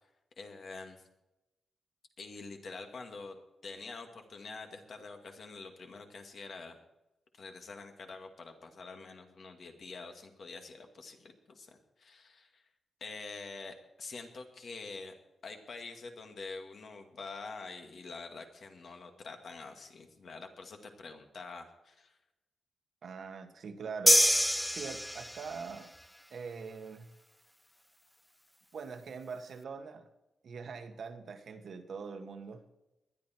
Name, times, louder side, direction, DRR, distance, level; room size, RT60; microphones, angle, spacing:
voice 1, 0.4-1.1 2.2-3.4 3.6-6.8 7.3-12.6 13.0-15.1 15.4-22.2, left 4 dB, 50° left, 2.1 m, -46 dB
voice 2, 23.0-25.9 26.3-27.1 28.7-30.1 30.4-32.6, right 5 dB, 60° right, 1.5 m, -43 dB
sound 1, 24.1-25.6, equal, ahead, 0.4 m, -25 dB
20.0 x 11.5 x 4.5 m
wide cardioid pair, 145°, 0 cm